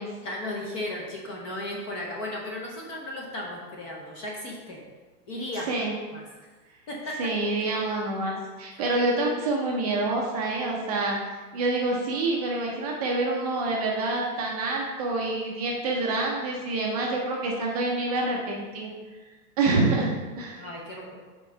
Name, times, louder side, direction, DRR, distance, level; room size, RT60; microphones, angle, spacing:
voice 1, 0.2-4.8 5.3-5.7 6.1-6.2 6.9-7.3 7.6-7.7 20.6-21.2, left 1 dB, 20° left, -2 dB, 0.6 m, -35 dB
voice 2, 7.2-11.2 11.5-18.9 19.6-20.6, right 2 dB, 25° right, -1 dB, 0.6 m, -27 dB
5.5 x 3.7 x 5.5 m, 1.3 s
hypercardioid pair, 150°, 48 cm